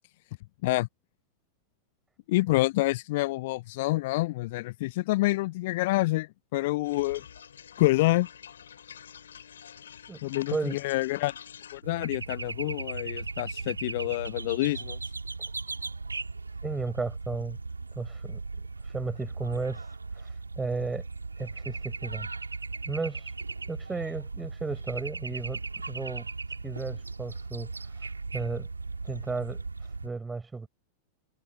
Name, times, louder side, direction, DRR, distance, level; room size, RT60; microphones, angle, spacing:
voice 1, 2.3-7.2 7.8-8.3 10.2-11.3 11.7-15.0, left 19 dB, 50° left, 0.4 m, -27 dB
sound 1, 6.8-11.8, left 8 dB, 65° left, 7.0 m, -47 dB
voice 2, 10.5-10.8 16.6-17.6 18.0-18.4 18.9-19.9 20.2-20.3 20.6-21.0 21.4-22.3 22.9-23.3 23.7-25.6 25.9-26.3 26.6-27.7 28.3-28.7 29.0-29.6 30.0-30.7, right 4 dB, 10° right, 7.4 m, -33 dB
sound 2, 11.8-30.1, right 3 dB, 80° right, 3.3 m, -37 dB
figure-of-eight pair, 90°, 0 cm